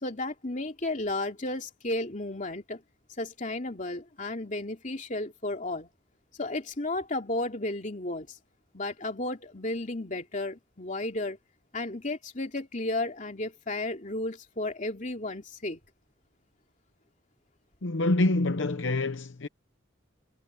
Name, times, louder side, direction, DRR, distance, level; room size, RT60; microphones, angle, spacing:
voice 1, 0.0-2.8 3.2-5.9 6.4-8.3 8.7-11.4 11.7-15.8, left 2 dB, 40° left, 2.8 m, -33 dB
voice 2, 17.8-19.5, left 2 dB, 65° left, 0.8 m, -26 dB
head